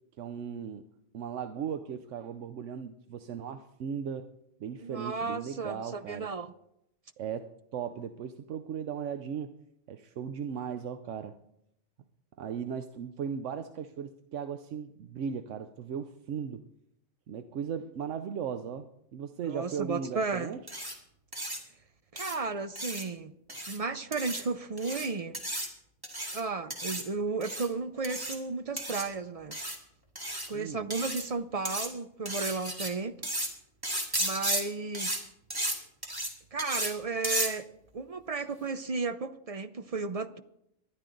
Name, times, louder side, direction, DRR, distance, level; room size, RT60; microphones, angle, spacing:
voice 1, 0.2-0.9 1.1-4.3 4.6-6.3 7.2-9.5 9.9-11.4 12.4-16.6 17.3-20.6 23.5-23.6 30.5-30.9, right 7 dB, 85° right, 9 dB, 1.0 m, -37 dB
voice 2, 4.8-6.5 19.4-20.5 22.1-23.3 23.6-25.4 26.3-29.6 30.5-33.3 34.2-35.2 36.5-37.7 37.9-40.4, right 4 dB, 45° right, 11 dB, 0.5 m, -34 dB
sound 1, 20.7-20.9 21.3-21.6 22.2-22.4 22.8-23.0 23.5-23.8 24.1-24.4 24.8-25.1 25.3-25.7 26.0-26.4 26.7-27.0 27.4-27.7 28.0-28.4 28.8-29.0 29.5-29.8 30.2-30.5 30.9-31.3 31.7-31.9 32.3-32.9 33.2-33.5 33.8-34.6 34.9-35.2 35.5-35.8 36.0-36.3 36.6-36.9 37.2-37.5, right 1 dB, 20° right, 2.2 m, -33 dB
19.5 x 12.0 x 3.8 m, 0.78 s
omnidirectional pair, 1.2 m